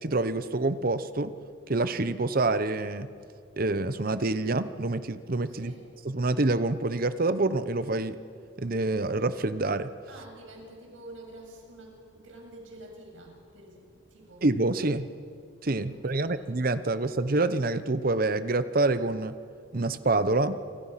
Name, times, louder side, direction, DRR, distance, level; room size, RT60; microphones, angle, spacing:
voice 1, 0.0-1.3 1.7-3.1 3.6-5.7 6.0-8.2 8.6-9.9 14.4-15.1 15.6-19.3 19.7-20.6, right 2 dB, 50° right, 12 dB, 0.9 m, -27 dB
voice 2, 5.5-5.9 10.1-14.5 15.9-16.5, right 1 dB, 85° right, 0 dB, 7.2 m, -48 dB
28.0 x 25.5 x 5.8 m, 2.3 s
head